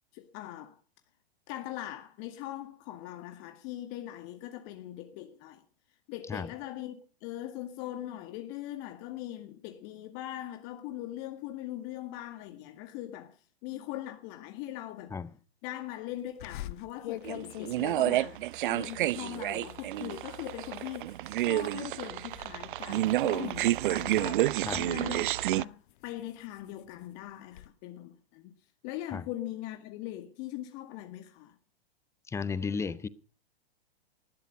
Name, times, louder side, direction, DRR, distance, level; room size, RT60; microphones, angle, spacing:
voice 1, 0.1-0.8 1.5-5.6 6.1-15.2 15.6-28.5 28.8-31.6, left 14 dB, 40° left, 1.9 m, -41 dB
sound 1, 16.4-21.8 22.1-22.6 22.9-24.9 25.5-27.7, left 14 dB, 55° left, 1.0 m, -45 dB
sound 2, 17.2-25.6, right 14 dB, 55° right, 0.7 m, -29 dB
voice 2, 32.3-33.1, left 5 dB, 10° left, 0.8 m, -33 dB
19.5 x 12.5 x 5.4 m
hypercardioid pair, 115°, 31 cm